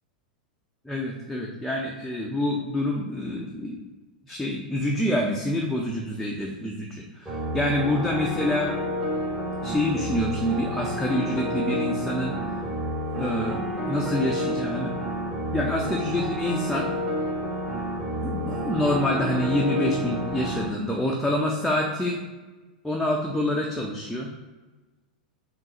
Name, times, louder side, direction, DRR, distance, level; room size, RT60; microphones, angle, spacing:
voice 1, 0.9-3.8 4.3-8.7 9.6-12.4 13.2-14.9 15.5-16.9 18.2-22.2 22.8-24.3, left 1 dB, 5° left, -2 dB, 0.5 m, -27 dB
sound 1, 7.3-20.7, equal, 15° right, 1.1 m, -30 dB
3.7 x 2.9 x 4.2 m, 1.2 s
figure-of-eight pair, 95°, 5 cm